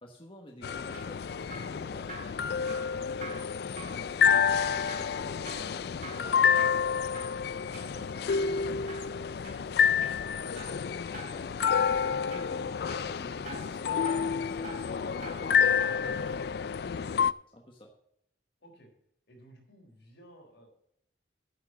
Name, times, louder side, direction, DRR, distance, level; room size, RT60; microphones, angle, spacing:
voice 1, 0.0-3.4 3.8-17.1 17.5-17.9, equal, 30° left, 1 dB, 1.2 m, -50 dB
sound 1, 0.6-17.3, left 7 dB, 55° left, 0.3 m, -29 dB
Drip, 0.6-16.1 16.4-16.5, right 2 dB, 40° right, 3.8 m, -48 dB
voice 2, 19.3-20.7, right 1 dB, 70° left, 1 dB, 4.0 m, -55 dB
9.6 x 6.6 x 7.6 m, 0.72 s
head